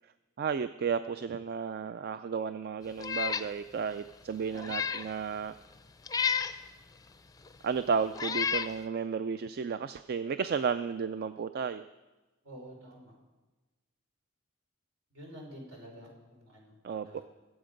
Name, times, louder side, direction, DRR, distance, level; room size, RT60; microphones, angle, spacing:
voice 1, 0.4-5.6 7.6-11.8 16.8-17.2, right 6 dB, 50° right, 12 dB, 0.4 m, -33 dB
Meow, 3.0-3.5 3.9-4.0 4.5-5.1 6.1-6.6 7.5-7.6 8.1-8.7, left 7 dB, 20° left, 0.5 m, -31 dB
voice 2, 12.4-13.1 15.1-16.8 17.0-17.2, equal, 70° right, -1 dB, 4.5 m, -49 dB
22.0 x 8.1 x 5.2 m, 1.1 s
head